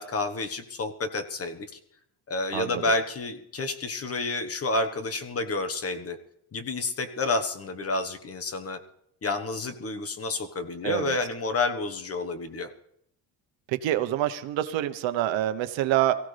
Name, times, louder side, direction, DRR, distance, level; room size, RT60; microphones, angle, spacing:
voice 1, 0.0-1.7 2.3-6.2 6.5-8.8 9.2-12.7, left 3 dB, 30° left, 8 dB, 1.4 m, -29 dB
voice 2, 2.5-2.9 10.8-11.2 13.7-16.1, right 13 dB, 75° right, 10 dB, 1.1 m, -26 dB
23.5 x 15.5 x 3.4 m, 0.73 s
cardioid pair, 145°, 46 cm